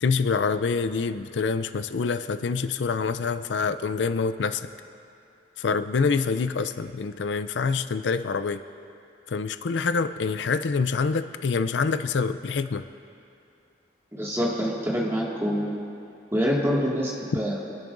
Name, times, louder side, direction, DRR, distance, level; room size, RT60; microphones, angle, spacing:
voice 1, 0.0-4.7 5.6-8.6 9.3-12.8, left 5 dB, 85° left, 11 dB, 0.5 m, -26 dB
voice 2, 14.1-15.7 16.3-17.7, equal, 15° right, -5 dB, 2.0 m, -26 dB
26.5 x 10.5 x 2.6 m, 2.7 s
head